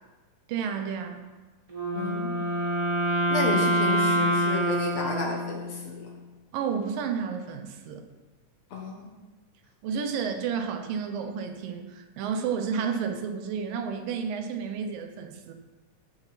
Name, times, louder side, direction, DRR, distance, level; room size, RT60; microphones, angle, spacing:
voice 1, 0.5-1.2 6.5-8.1 9.8-15.5, right 6 dB, 85° right, 6 dB, 2.7 m, -31 dB
Wind instrument woodwind instrument, 1.7-5.9, equal, 20° right, 1.0 m, -26 dB
voice 2, 1.9-2.4 3.3-6.1 8.7-9.1, left 3 dB, 55° left, 1 dB, 2.1 m, -32 dB
14.0 x 7.1 x 4.2 m, 1.2 s
omnidirectional pair, 3.9 m